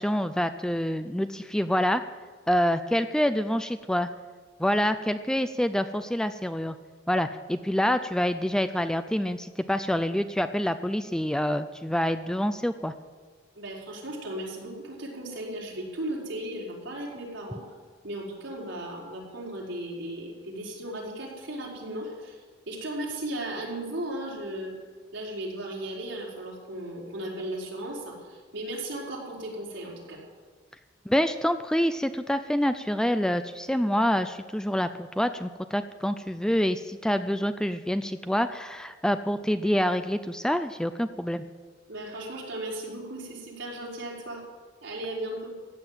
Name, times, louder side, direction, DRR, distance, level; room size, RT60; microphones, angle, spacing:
voice 1, 0.0-2.0 2.5-4.1 4.6-6.8 7.1-12.9 31.1-41.4, equal, 5° left, 10 dB, 0.4 m, -26 dB
voice 2, 13.5-17.6 18.0-22.4 22.7-24.7 25.1-30.2 41.9-44.4 44.8-45.5, right 1 dB, 70° right, -4 dB, 4.9 m, -36 dB
16.0 x 9.7 x 7.5 m, 1.5 s
head